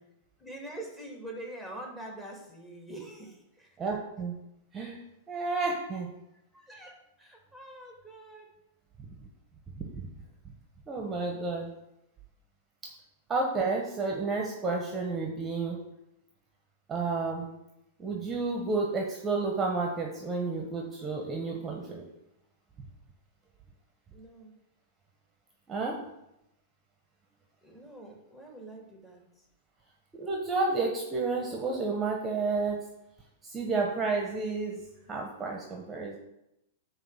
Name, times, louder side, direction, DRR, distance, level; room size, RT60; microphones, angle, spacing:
voice 1, 0.4-3.7 6.5-8.5 24.1-24.5 27.6-29.2, right 1 dB, 10° left, -1 dB, 2.5 m, -45 dB
voice 2, 3.8-4.4 4.7-5.0 5.3-6.1 9.9-10.1 10.9-11.7 13.3-15.8 16.9-17.5 18.0-22.0 25.7-26.0 30.2-32.8 33.4-34.8 35.1-36.2, right 3 dB, 20° right, 1 dB, 1.3 m, -31 dB
9.2 x 3.3 x 6.5 m, 0.85 s
figure-of-eight pair, 100°, 0 cm